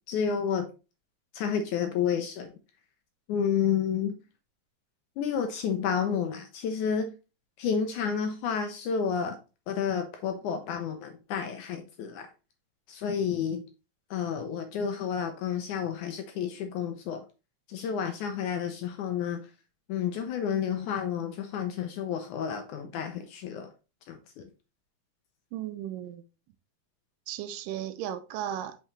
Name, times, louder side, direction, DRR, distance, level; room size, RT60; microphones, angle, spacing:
voice 1, 0.1-0.7 1.3-2.5 3.3-4.1 5.2-7.1 7.6-9.4 9.7-12.3 12.9-13.6 14.1-17.2 17.7-19.4 19.9-23.7 24.1-24.4, left 7 dB, 75° left, 1.9 m, -30 dB
voice 2, 25.5-26.2 27.3-28.8, right 11 dB, 80° right, 2.1 m, -35 dB
5.8 x 5.6 x 3.1 m
omnidirectional pair, 4.0 m